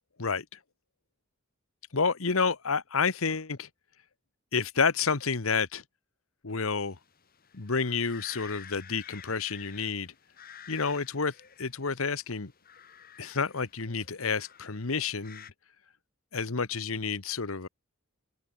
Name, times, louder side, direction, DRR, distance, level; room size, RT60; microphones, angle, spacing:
voice 1, 0.2-0.6 1.9-3.7 4.5-5.8 6.4-7.0 7.5-10.1 10.7-12.5 13.2-15.4 16.3-17.7, left 5 dB, 75° left, 1.2 m, -29 dB
sound 1, 6.7-15.5, left 9 dB, 45° left, 3.1 m, -51 dB
open air
head